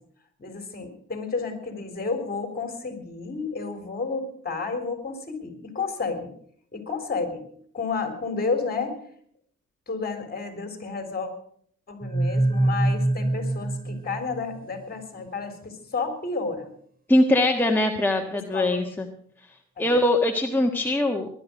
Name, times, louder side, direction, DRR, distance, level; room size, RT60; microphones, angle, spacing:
voice 1, 0.4-6.3 6.7-7.5 7.7-9.0 9.9-11.3 11.9-16.7 18.5-18.9 19.8-20.0, left 4 dB, 30° left, 6 dB, 3.8 m, -31 dB
sound 1, 12.0-14.8, right 1 dB, 30° right, 2.2 m, -25 dB
voice 2, 17.1-19.1 19.8-21.3, left 1 dB, 5° left, 1 dB, 1.4 m, -22 dB
19.5 x 11.5 x 5.2 m, 0.63 s
cardioid pair, 90°, 30 cm